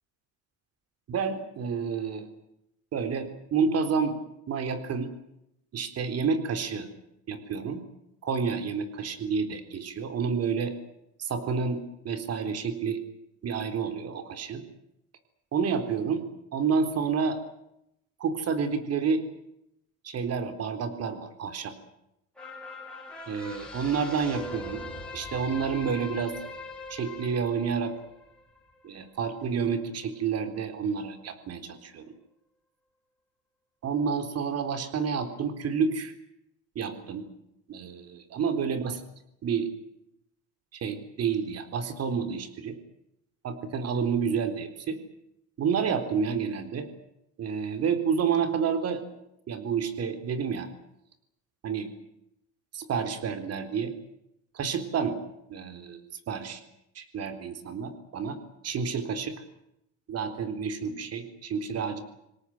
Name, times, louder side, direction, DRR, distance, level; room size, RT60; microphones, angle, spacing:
voice 1, 1.1-2.3 2.9-4.2 4.5-5.1 5.7-6.9 7.3-7.8 8.2-10.7 11.2-13.0 13.4-14.6 15.5-16.2 16.5-17.4 18.2-19.3 20.0-21.7 23.3-24.9 25.1-26.4 26.9-27.9 28.8-32.1 33.8-36.1 36.8-37.2 37.7-39.0 39.4-39.7 40.7-42.8 43.4-45.0 45.6-46.9 47.4-49.0 49.5-50.7 51.6-51.9 52.7-53.9 54.5-55.2 55.5-56.0 56.3-56.6 57.0-58.4 58.6-59.4 60.1-62.0, right 6 dB, 45° right, 9 dB, 3.9 m, -29 dB
sound 1, 22.4-29.0 29.4-29.5, left 2 dB, 5° left, 7.2 m, -41 dB
27.0 x 18.0 x 9.1 m, 0.80 s
cardioid pair, 145°, 34 cm